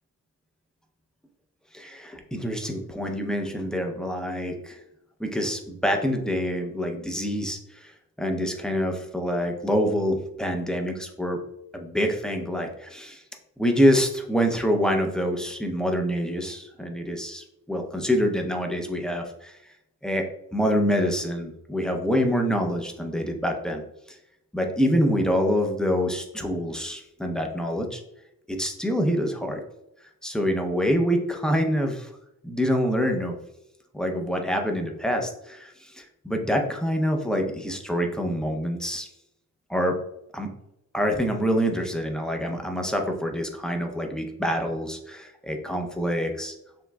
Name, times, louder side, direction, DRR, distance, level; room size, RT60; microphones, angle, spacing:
voice 1, 1.7-4.8 5.2-11.4 11.7-13.2 13.6-19.6 20.0-20.2 20.5-23.8 24.1-24.2 24.5-28.0 28.5-29.6 30.2-32.1 32.4-33.3 33.9-39.1 39.7-40.0 40.3-40.5 40.9-46.5, equal, ahead, 3 dB, 0.6 m, -26 dB
7.2 x 3.2 x 2.2 m, 0.81 s
wide cardioid pair, 145°, 35 cm